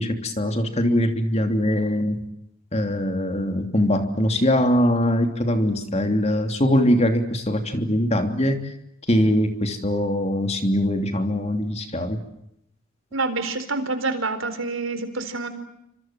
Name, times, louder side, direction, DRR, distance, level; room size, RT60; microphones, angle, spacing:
voice 1, 0.0-2.2 2.7-8.7 9.1-12.2, equal, 30° left, 6 dB, 3.1 m, -22 dB
voice 2, 13.1-15.5, right 3 dB, 70° right, 10 dB, 4.3 m, -27 dB
29.0 x 26.5 x 7.6 m, 0.79 s
head